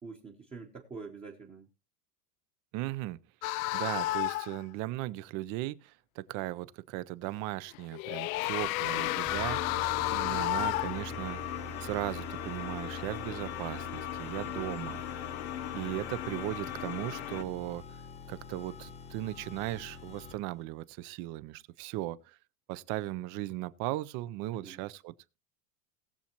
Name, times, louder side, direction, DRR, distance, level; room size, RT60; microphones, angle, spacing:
voice 1, 0.0-1.7 10.2-10.5 14.4-14.9 24.5-24.8, right 4 dB, 15° right, 0.9 m, -46 dB
voice 2, 2.7-3.2 3.7-9.8 10.1-11.5 11.8-15.0 15.7-17.8 18.3-22.4 22.7-25.1, right 17 dB, 40° right, 0.5 m, -37 dB
sound 1, 3.4-4.6 7.7-11.1, left 19 dB, 65° left, 0.5 m, -31 dB
sound 2, 8.9-17.4, left 12 dB, 35° left, 0.9 m, -39 dB
sound 3, 9.2-20.6, left 1 dB, 15° left, 1.0 m, -45 dB
19.0 x 7.1 x 2.9 m
supercardioid pair, 155°, 47 cm